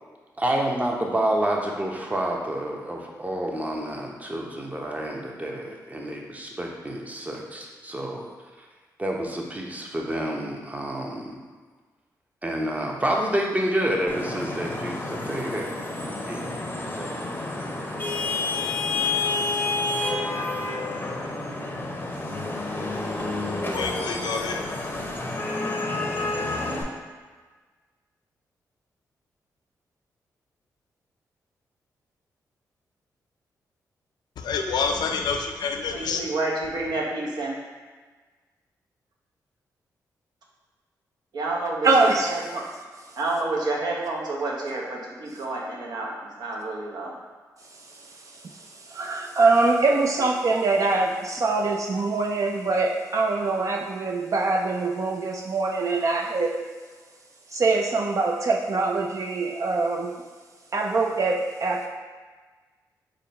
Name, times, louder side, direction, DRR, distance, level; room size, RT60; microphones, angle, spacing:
voice 1, 0.4-8.3 9.0-11.3 12.4-15.8 16.3-16.4 17.0-17.3, right 1 dB, 20° right, 0 dB, 0.7 m, -28 dB
Vehicle horn car horn honking / Traffic noise roadway noise, 14.1-26.8, left 2 dB, 25° left, 0.6 m, -29 dB
voice 2, 23.7-24.6 34.4-36.2, left 5 dB, 75° left, 4 dB, 0.4 m, -27 dB
voice 3, 35.9-37.6 41.3-42.6 43.2-47.1, right 2 dB, 70° right, -3 dB, 0.8 m, -29 dB
voice 4, 41.8-42.3 48.3-56.5 57.5-60.1 60.7-61.9, right 3 dB, 45° right, 1 dB, 0.4 m, -23 dB
3.8 x 2.2 x 4.0 m, 1.4 s
supercardioid pair, 55°, 7 cm